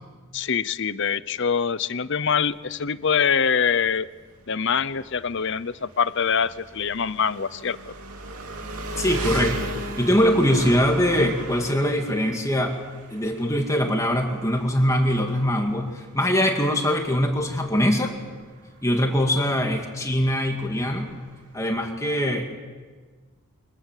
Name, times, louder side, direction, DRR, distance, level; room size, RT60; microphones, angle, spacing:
voice 1, 0.3-4.1 4.5-7.9, left 6 dB, 55° left, 16 dB, 0.8 m, -24 dB
Engine, 2.2-21.8, right 2 dB, 85° right, 2.9 m, -37 dB
voice 2, 9.0-12.8 13.1-18.1 18.8-21.1 21.5-22.6, equal, 15° left, 2 dB, 2.1 m, -22 dB
28.5 x 24.5 x 7.5 m, 1.5 s
head